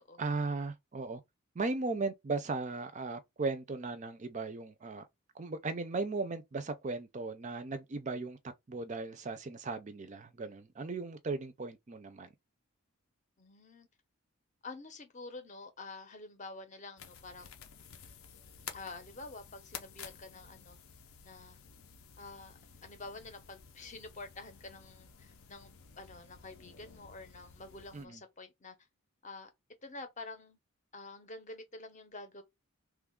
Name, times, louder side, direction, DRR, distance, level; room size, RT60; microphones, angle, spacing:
voice 1, 0.2-1.2 1.6-5.1 5.3-8.4 8.7-12.3 27.9-28.2, right 3 dB, 35° right, 0.4 m, -37 dB
voice 2, 13.4-13.9 14.6-17.6 18.7-20.8 21.2-21.6 22.2-28.7 29.2-29.5 29.8-30.6 30.9-32.4, left 3 dB, 35° left, 0.7 m, -48 dB
sound 1, 17.0-28.0, left 7 dB, 70° left, 0.6 m, -52 dB
3.1 x 2.3 x 3.6 m
head